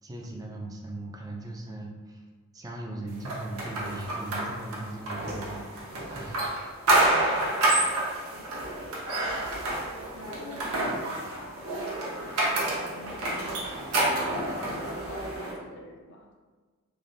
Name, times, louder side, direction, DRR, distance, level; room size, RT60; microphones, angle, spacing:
voice 1, 0.0-2.2 2.5-6.4, right 1 dB, 15° right, 0 dB, 0.3 m, -39 dB
sound 1, 3.2-15.5, right 2 dB, 75° right, 0.8 m, -29 dB
voice 2, 7.2-8.0 10.2-12.1 12.4-16.3, left 1 dB, 55° left, 1 dB, 0.5 m, -44 dB
3.2 x 2.5 x 2.5 m, 1.4 s
head